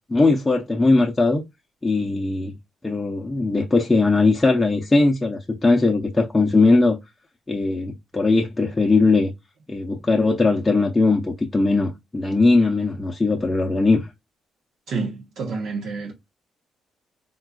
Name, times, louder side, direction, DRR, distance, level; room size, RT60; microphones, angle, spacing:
voice 1, 0.1-1.4 1.8-2.5 2.8-7.0 7.5-9.3 9.7-14.1, left 3 dB, 20° left, 0.5 m, -19 dB
voice 2, 14.9-16.1, right 4 dB, 70° right, 0.8 m, -28 dB
3.8 x 2.3 x 2.3 m
cardioid pair, 90°, 0 cm